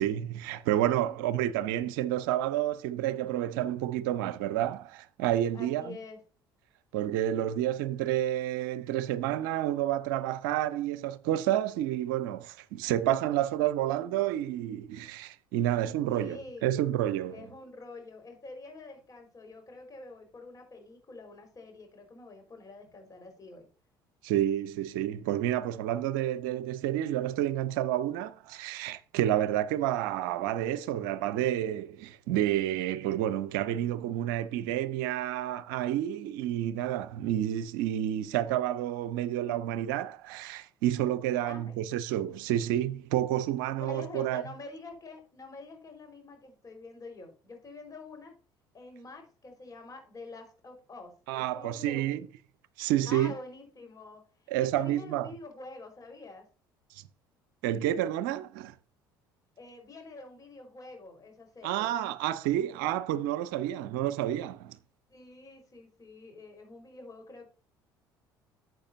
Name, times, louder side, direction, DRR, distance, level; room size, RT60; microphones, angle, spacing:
voice 1, 0.0-6.0 6.9-17.4 24.2-44.4 51.3-52.2 52.8-53.3 54.5-55.3 57.6-58.7 61.6-64.8, right 12 dB, 65° right, 0.7 m, -29 dB
voice 2, 5.5-6.2 16.1-16.8 17.3-23.7 41.4-41.9 43.8-48.3 48.7-52.2 53.0-56.5 59.6-62.0 65.1-67.5, left 3 dB, 30° left, 4.9 m, -46 dB
11.5 x 7.9 x 2.8 m
figure-of-eight pair, 55°, 12 cm